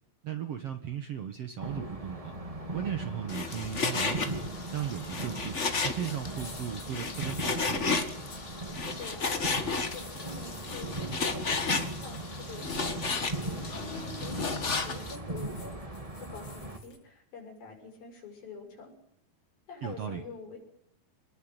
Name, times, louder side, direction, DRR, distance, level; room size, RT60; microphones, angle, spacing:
voice 1, 0.2-2.3 2.7-4.2 4.7-5.6 5.8-8.2 19.8-20.2, right 9 dB, 60° right, 7 dB, 1.8 m, -36 dB
sound 1, 1.6-16.8, right 2 dB, 10° right, 2.1 m, -39 dB
Frying (food), 3.3-15.2, left 4 dB, 55° left, 0.8 m, -33 dB
sound 2, 5.3-5.4 6.3-7.8 8.3-8.4 9.6-11.0 11.5-13.1 13.4-13.7 14.7-17.0, left 3 dB, 90° left, 7.9 m, -52 dB
voice 2, 8.8-18.9 19.7-20.6, left 4 dB, 75° left, 3 dB, 8.2 m, -46 dB
27.0 x 20.5 x 8.0 m, 0.75 s
omnidirectional pair, 4.3 m